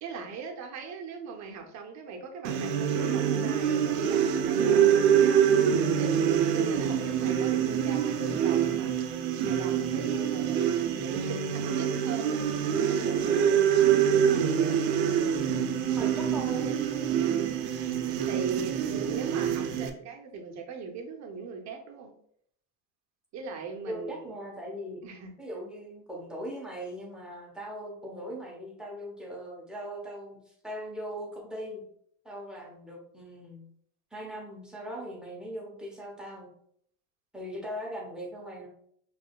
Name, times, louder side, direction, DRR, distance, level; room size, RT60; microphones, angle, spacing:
voice 1, 0.0-5.5 6.0-8.9 9.4-13.7 14.1-14.7 18.2-22.1 23.3-24.2 25.0-25.3, right 5 dB, 35° right, 3 dB, 0.9 m, -39 dB
sound 1, 2.4-19.9, right 8 dB, 75° right, 0.7 m, -25 dB
voice 2, 15.9-16.8 23.9-25.0 25.4-31.8 32.2-33.7 34.1-36.5 37.3-38.7, equal, ahead, -3 dB, 1.1 m, -39 dB
4.8 x 3.3 x 2.4 m, 0.67 s
supercardioid pair, 120°, 45 cm